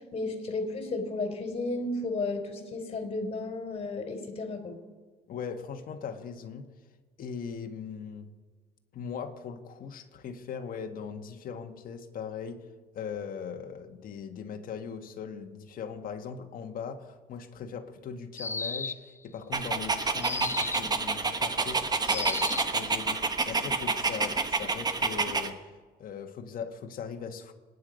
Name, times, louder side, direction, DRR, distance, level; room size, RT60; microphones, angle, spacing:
voice 1, 0.1-4.8, left 2 dB, 35° left, 4 dB, 3.5 m, -33 dB
voice 2, 5.3-6.7 7.2-8.3 8.9-12.7 12.9-27.5, left 6 dB, 55° left, 5 dB, 1.6 m, -39 dB
sound 1, 18.4-19.2 20.2-21.0 22.1-22.8, left 3 dB, 15° left, 0.5 m, -34 dB
Dog, 19.5-25.5, right 4 dB, 25° right, 1.2 m, -29 dB
27.0 x 9.6 x 5.3 m, 1.4 s
cardioid pair, 110°, 17 cm